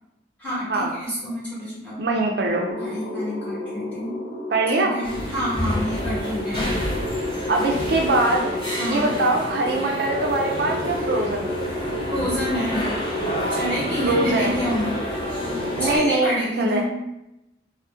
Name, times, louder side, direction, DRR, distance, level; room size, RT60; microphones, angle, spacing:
voice 1, 0.4-2.0 2.8-4.2 4.7-6.7 8.8-9.1 12.1-12.9 13.5-14.9 15.8-16.8, equal, 10° left, -10 dB, 1.2 m, -28 dB
voice 2, 2.0-2.7 4.5-5.0 7.5-8.5 8.8-11.5 14.0-14.5 15.8-16.8, right 2 dB, 60° right, 0 dB, 0.3 m, -22 dB
sound 1, 2.5-16.1, left 1 dB, 55° left, 0.5 m, -32 dB
sound 2, 5.0-16.0, equal, 25° left, 0.8 m, -29 dB
2.6 x 2.1 x 3.5 m, 0.91 s
head